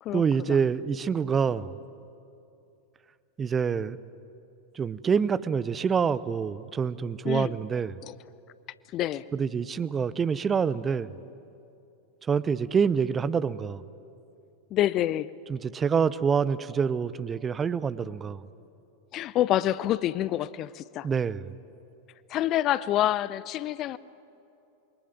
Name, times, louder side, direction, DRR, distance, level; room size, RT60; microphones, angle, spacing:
voice 1, 0.1-1.7 3.4-4.0 4.7-8.0 9.3-11.1 12.3-13.8 15.5-18.4 21.0-21.5, right 6 dB, 20° right, 0.7 m, -26 dB
voice 2, 8.9-9.2 14.7-15.3 19.1-21.1 22.3-24.0, left 13 dB, 35° left, 0.6 m, -27 dB
26.5 x 23.5 x 9.4 m
figure-of-eight pair, 90°, 0 cm